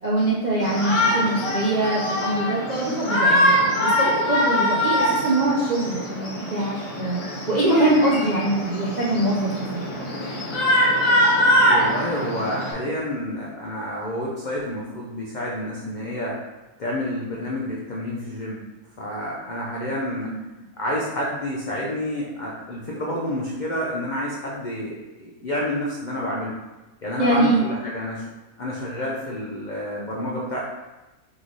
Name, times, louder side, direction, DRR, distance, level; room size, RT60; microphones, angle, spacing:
voice 1, 0.0-10.1 20.3-20.4 27.2-27.6, right 2 dB, 65° right, -6 dB, 0.4 m, -23 dB
Shout, 0.6-12.7, equal, 45° left, 1.0 m, -23 dB
voice 2, 11.6-16.4 16.8-18.6 19.0-20.3 20.8-26.6 27.0-28.3 28.6-30.6, left 1 dB, 80° left, -4 dB, 0.4 m, -29 dB
3.8 x 3.1 x 3.9 m, 1.1 s
omnidirectional pair, 1.6 m